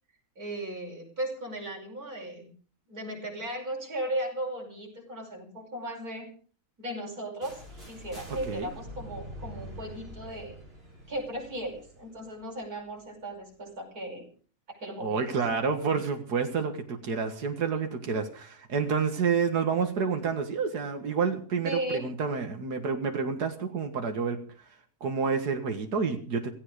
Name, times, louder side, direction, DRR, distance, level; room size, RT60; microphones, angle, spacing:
voice 1, 0.4-2.5 2.9-6.3 6.8-10.6 11.1-14.2 14.7-15.4 21.6-22.0, right 1 dB, 65° right, 1 dB, 6.1 m, -36 dB
sound 1, 7.4-13.2, equal, 35° right, 6.1 m, -45 dB
voice 2, 15.0-24.4 25.0-26.5, right 5 dB, 85° right, 5 dB, 2.2 m, -29 dB
16.5 x 16.0 x 5.1 m, 0.42 s
omnidirectional pair, 1.7 m